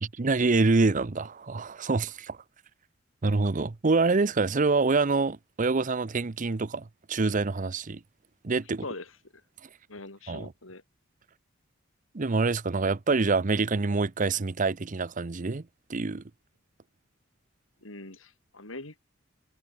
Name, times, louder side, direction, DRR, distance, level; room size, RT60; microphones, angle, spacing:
voice 1, 0.0-2.4 3.2-8.0 8.4-8.8 9.6-9.7 10.3-10.5 12.1-16.2, right 3 dB, 40° right, 0.7 m, -26 dB
voice 2, 9.9-10.8 17.8-19.0, left 2 dB, 90° left, 4.4 m, -42 dB
head